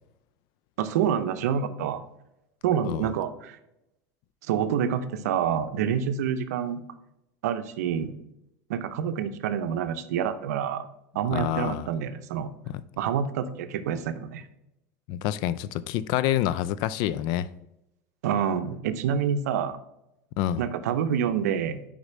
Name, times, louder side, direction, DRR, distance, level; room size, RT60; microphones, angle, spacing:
voice 1, 0.8-2.0 2.6-3.6 4.5-6.8 7.4-8.2 8.7-10.9 11.1-12.5 13.0-14.4 18.2-19.8 20.6-21.9, right 8 dB, 85° right, 0.5 m, -27 dB
voice 2, 11.3-11.9 12.7-12.8 15.1-17.5 20.4-20.6, left 12 dB, 60° left, 0.4 m, -27 dB
5.1 x 4.9 x 4.2 m
supercardioid pair, 105°, 8 cm